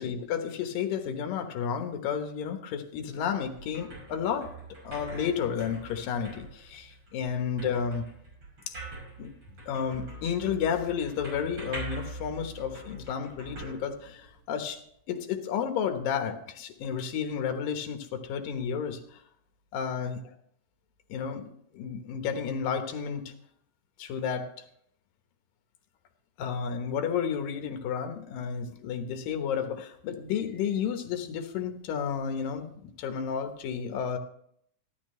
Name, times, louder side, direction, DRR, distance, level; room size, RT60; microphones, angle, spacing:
voice 1, 0.0-4.5 4.8-8.0 8.7-8.8 9.2-9.3 9.7-14.8 15.1-19.2 19.7-20.3 21.1-23.3 24.0-24.4 26.4-34.2, left 7 dB, 85° left, 6 dB, 2.9 m, -32 dB
sound 1, 3.1-14.6, right 2 dB, 40° right, 6.8 m, -44 dB
14.5 x 12.5 x 3.2 m, 0.68 s
omnidirectional pair, 3.9 m